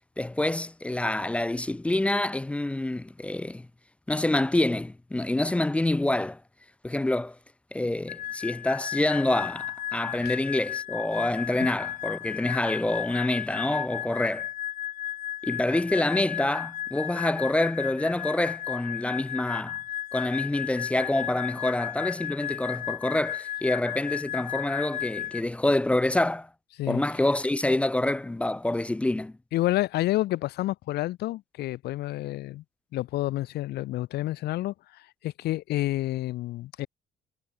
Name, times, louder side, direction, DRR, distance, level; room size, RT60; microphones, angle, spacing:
voice 1, 0.2-3.7 4.1-6.4 6.8-7.4 7.7-14.5 15.4-19.8 20.1-26.5 26.9-29.3, left 1 dB, 5° left, 0.3 m, -27 dB
sound 1, 8.1-25.4, left 12 dB, 55° left, 0.8 m, -34 dB
voice 2, 29.5-32.6 32.9-36.9, left 16 dB, 75° left, 1.3 m, -29 dB
cardioid pair, 110°, 17 cm